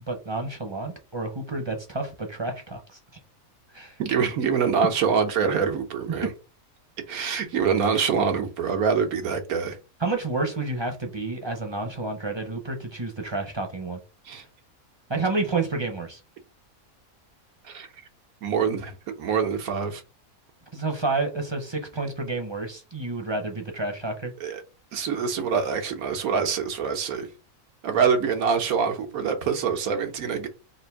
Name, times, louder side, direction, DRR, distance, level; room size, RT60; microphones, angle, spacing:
voice 1, 0.1-3.0 3.7-4.0 10.0-14.0 15.1-16.2 20.7-24.3, right 3 dB, 25° right, 0.6 m, -30 dB
voice 2, 4.0-6.3 7.1-9.8 14.2-14.4 17.6-17.9 18.4-20.0 24.4-24.6 24.9-27.3 27.8-30.5, right 6 dB, 90° right, 1.4 m, -25 dB
3.7 x 2.5 x 4.6 m
omnidirectional pair, 1.5 m